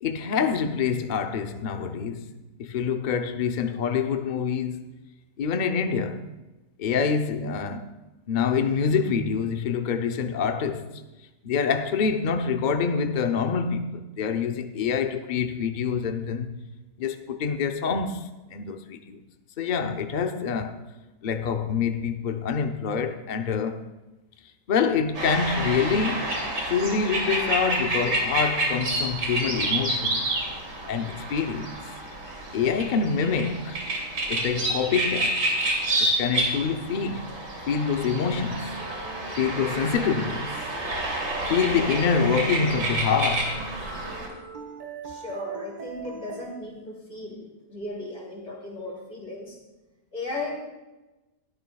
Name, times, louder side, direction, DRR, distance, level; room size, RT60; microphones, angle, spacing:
voice 1, 0.0-2.3 2.6-4.9 5.4-6.3 6.8-7.9 8.3-11.0 11.4-16.5 17.0-19.2 19.6-20.8 21.2-23.9 24.7-26.4 26.6-30.2 30.8-31.8 32.5-33.8 34.3-35.4 36.0-37.3 37.6-38.7 39.4-41.0 41.5-43.6, left 6 dB, 75° left, 0.4 m, -26 dB
sound 1, 25.1-44.3, right 1 dB, 75° right, 3.1 m, -29 dB
sound 2, 38.5-46.5, right 4 dB, 25° right, 1.6 m, -41 dB
voice 2, 45.0-49.6 50.1-50.6, left 2 dB, 45° left, 3.6 m, -36 dB
20.5 x 13.0 x 2.3 m
omnidirectional pair, 1.8 m